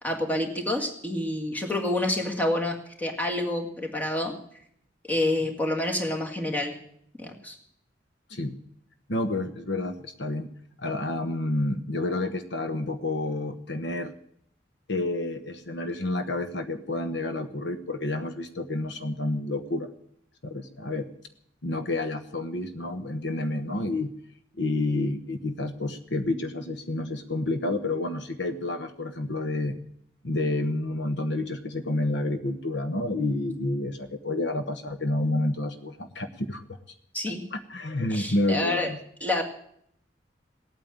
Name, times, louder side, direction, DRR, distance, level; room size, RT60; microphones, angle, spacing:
voice 1, 0.0-4.4 5.1-6.8 7.2-7.6 37.1-37.4 38.1-38.9 39.2-39.4, left 1 dB, 10° left, 1 dB, 2.2 m, -28 dB
voice 2, 9.1-14.1 14.9-19.9 20.4-21.1 21.6-24.1 24.6-29.8 30.2-36.6 37.5-39.0, left 2 dB, 65° left, 9 dB, 1.1 m, -29 dB
18.0 x 9.0 x 8.8 m, 0.69 s
head